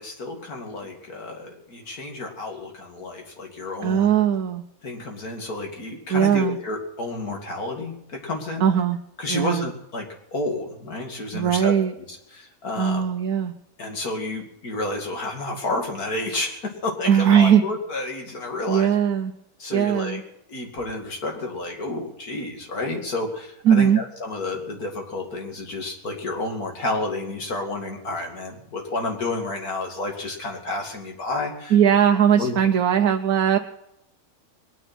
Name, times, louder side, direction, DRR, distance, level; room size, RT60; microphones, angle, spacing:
voice 1, 0.0-4.1 4.8-8.7 9.2-11.7 12.1-13.0 13.8-18.9 19.6-20.2 20.5-31.8 32.4-32.5, left 2 dB, 80° left, 2 dB, 3.1 m, -30 dB
voice 2, 3.8-4.6 6.1-6.6 8.6-9.0 9.3-9.7 11.3-11.9 12.8-13.5 17.1-17.6 18.7-19.3 19.7-20.2 23.7-24.0 31.7-33.6, right 8 dB, 80° right, 5 dB, 1.3 m, -19 dB
21.5 x 10.0 x 6.1 m, 0.83 s
omnidirectional pair, 1.6 m